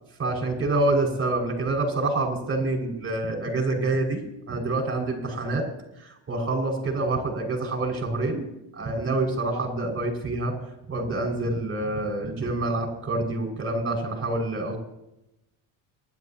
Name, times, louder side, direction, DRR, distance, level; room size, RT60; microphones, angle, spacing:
voice 1, 0.2-4.2 4.5-5.6 6.0-10.6 10.9-14.8, right 2 dB, 30° right, 1 dB, 6.3 m, -27 dB
29.5 x 12.0 x 3.0 m, 0.88 s
cardioid pair, 115°, 45 cm